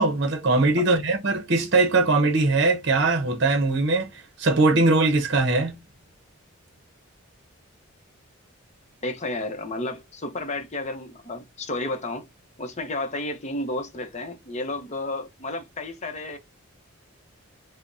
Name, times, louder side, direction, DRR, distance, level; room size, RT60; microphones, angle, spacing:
voice 1, 0.0-5.7, right 3 dB, 55° right, 0.7 m, -21 dB
voice 2, 9.0-12.3 12.6-16.4, left 2 dB, 35° left, 0.7 m, -32 dB
4.9 x 2.1 x 2.6 m
head